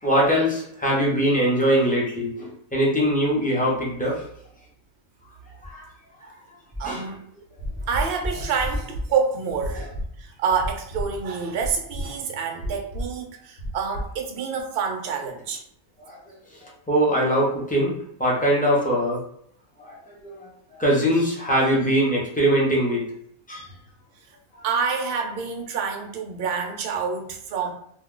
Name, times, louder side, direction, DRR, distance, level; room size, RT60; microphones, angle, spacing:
voice 1, 0.0-4.2 5.6-5.8 6.2-6.3 6.8-7.0 16.1-16.2 16.9-19.2 19.8-23.0 23.5-23.7, equal, 10° left, -5 dB, 0.5 m, -22 dB
voice 2, 6.8-7.2 7.9-9.9 10.2-15.6 24.6-27.7, right 6 dB, 60° right, 2 dB, 0.6 m, -27 dB
sound 1, 7.6-8.0 8.6-9.0 9.6-10.0 10.6-11.1 11.6-12.1 12.6-13.1 13.6-14.1 14.6-14.7, equal, 70° left, 1.0 m, -30 dB
2.4 x 2.3 x 3.7 m, 0.69 s
omnidirectional pair, 1.5 m